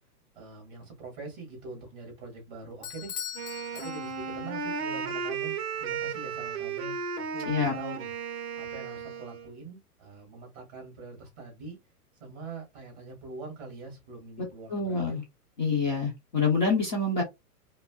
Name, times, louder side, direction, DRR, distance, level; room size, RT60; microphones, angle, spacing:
voice 1, 0.4-3.2 3.7-8.1 8.6-11.8 12.2-15.2, right 3 dB, 20° right, 2.1 m, -43 dB
Bell / Doorbell, 2.8-4.5, left 9 dB, 85° left, 1.0 m, -40 dB
Wind instrument woodwind instrument, 3.3-9.5, right 5 dB, 40° right, 0.7 m, -34 dB
voice 2, 14.7-15.2 15.6-17.2, left 4 dB, 30° left, 0.8 m, -26 dB
4.9 x 2.1 x 2.3 m
hypercardioid pair, 180°, 46 cm